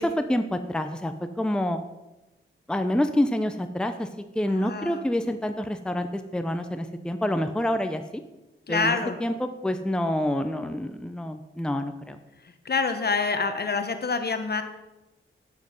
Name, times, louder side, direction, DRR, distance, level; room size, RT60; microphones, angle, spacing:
voice 1, 0.0-1.8 2.7-4.1 4.3-8.2 8.7-12.2, left 1 dB, 5° left, 8 dB, 0.7 m, -27 dB
voice 2, 4.4-5.1 8.7-9.2 12.4-14.6, left 4 dB, 50° left, 8 dB, 1.1 m, -27 dB
9.1 x 7.7 x 5.3 m, 1.0 s
cardioid pair, 70°, 21 cm